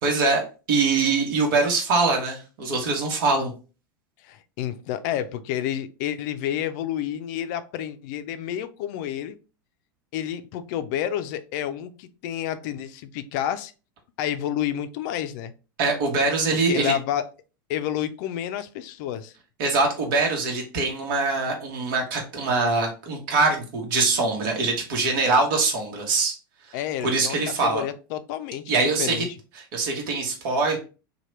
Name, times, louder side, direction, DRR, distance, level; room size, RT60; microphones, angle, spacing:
voice 1, 0.0-0.4 0.7-3.5 15.8-16.9 19.6-26.3 27.0-27.8 28.7-29.2 29.7-30.8, right 3 dB, 65° right, 1 dB, 1.0 m, -23 dB
voice 2, 4.3-9.4 10.1-13.7 14.2-15.5 16.7-17.3 17.7-19.3 26.7-29.3, left 11 dB, 55° left, 11 dB, 0.4 m, -30 dB
2.9 x 2.2 x 3.1 m, 0.33 s
hypercardioid pair, 100°, 12 cm